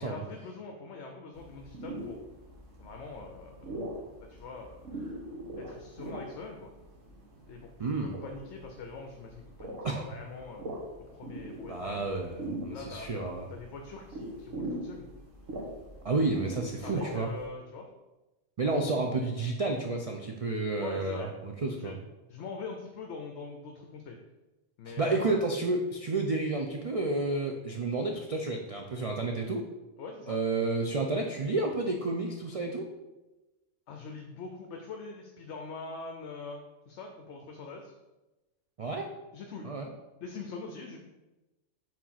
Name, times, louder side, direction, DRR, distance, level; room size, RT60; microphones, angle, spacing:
voice 1, 0.0-2.2 2.8-3.6 4.2-4.8 5.6-6.7 7.5-10.7 11.1-12.1 12.7-15.1 16.8-17.9 20.7-21.3 21.7-22.0 22.3-24.2 24.8-25.4 30.0-30.4 33.9-37.9 39.3-39.7 40.2-41.0, left 4 dB, 65° left, 3 dB, 0.9 m, -43 dB
sound 1, 1.3-17.5, right 1 dB, 75° right, 1.7 m, -42 dB
voice 2, 7.8-8.1 9.8-10.1 11.7-13.5 16.0-17.3 18.6-22.0 24.9-29.6 30.3-32.9 38.8-39.1 39.6-39.9, right 3 dB, 55° right, 1 dB, 0.4 m, -31 dB
4.7 x 3.9 x 5.7 m, 1.1 s
omnidirectional pair, 1.3 m